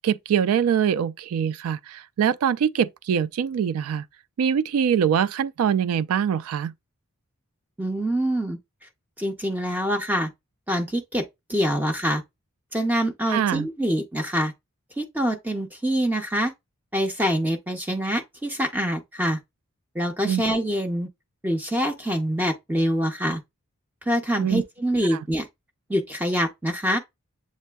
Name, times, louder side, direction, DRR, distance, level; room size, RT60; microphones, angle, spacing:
voice 1, 0.0-4.0 4.4-6.7 13.3-13.7 20.2-20.4 24.4-24.6 25.1-25.2, right 8 dB, 80° right, 0.3 m, -23 dB
voice 2, 7.8-8.6 9.2-10.3 10.7-11.2 11.5-12.2 12.7-14.5 15.0-16.5 16.9-19.4 19.9-21.1 21.4-23.4 24.1-25.5 25.9-27.0, equal, 10° right, 0.4 m, -25 dB
7.4 x 2.6 x 2.2 m
head